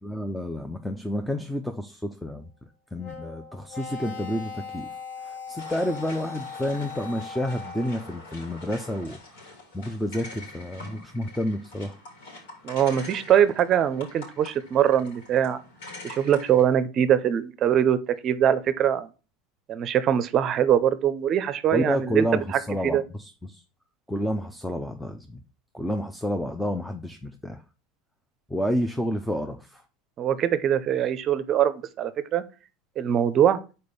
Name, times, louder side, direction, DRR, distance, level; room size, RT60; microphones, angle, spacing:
voice 1, 0.0-2.5 2.9-4.9 5.2-9.2 9.7-12.0 21.7-23.6 24.1-25.4 25.7-27.6 28.5-29.8, equal, 5° left, 6 dB, 0.5 m, -29 dB
sound 1, 3.0-8.1, left 5 dB, 55° left, 2.6 m, -39 dB
sound 2, 5.6-16.6, left 2 dB, 85° left, 3.2 m, -44 dB
voice 2, 12.6-15.6 16.0-19.1 19.7-22.3 22.5-23.0 30.2-32.4 33.0-33.6, right 9 dB, 40° right, 14 dB, 0.6 m, -22 dB
5.0 x 4.3 x 5.4 m, 0.33 s
supercardioid pair, 130°, 0 cm